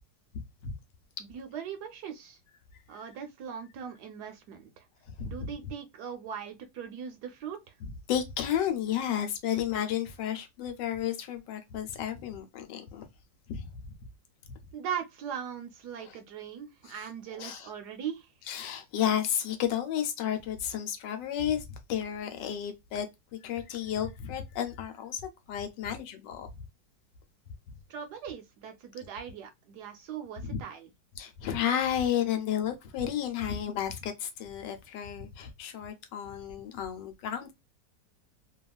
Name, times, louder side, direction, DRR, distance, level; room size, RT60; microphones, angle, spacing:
voice 1, 0.3-0.7 5.2-5.5 7.8-13.1 13.5-13.9 16.0-16.2 16.9-17.0 17.4-17.7 18.5-23.1 23.4-25.2 25.5-26.5 30.4-30.6 31.2-37.5, left 9 dB, 80° left, 1.2 m, -32 dB
voice 2, 1.2-2.4 2.9-4.9 5.2-7.7 14.7-18.3 27.9-30.9, right 8 dB, 70° right, 1.1 m, -40 dB
2.9 x 2.4 x 2.2 m
omnidirectional pair, 1.9 m